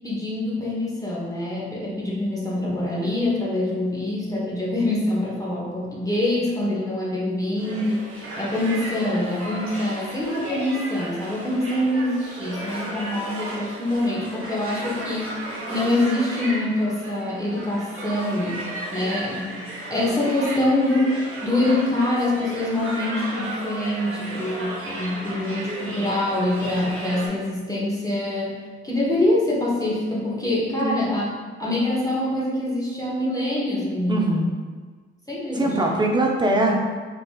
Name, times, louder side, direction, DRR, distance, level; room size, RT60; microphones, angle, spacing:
voice 1, 0.0-18.6 18.9-28.5 28.8-31.2 31.6-34.5 35.3-36.0, left 1 dB, 10° left, -7 dB, 1.0 m, -25 dB
sound 1, 7.6-27.3, right 1 dB, 45° right, 1.1 m, -34 dB
voice 2, 34.1-34.5 35.5-36.7, right 2 dB, 15° right, 0 dB, 0.6 m, -21 dB
3.3 x 2.4 x 2.3 m, 1.5 s
hypercardioid pair, 40°, 31 cm